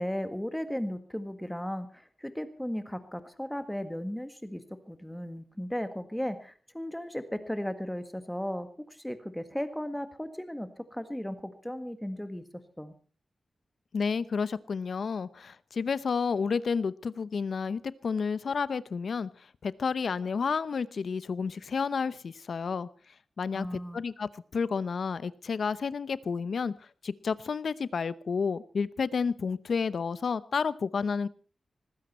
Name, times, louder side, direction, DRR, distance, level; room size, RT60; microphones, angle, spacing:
voice 1, 0.0-4.6 4.9-12.4 12.8-12.9 23.5-24.0, equal, 5° left, 10 dB, 1.7 m, -36 dB
voice 2, 13.9-19.3 19.6-22.9 23.4-26.7 27.0-31.3, left 5 dB, 60° left, 17 dB, 0.8 m, -31 dB
19.5 x 15.5 x 4.4 m, 0.39 s
wide cardioid pair, 135°, 0 cm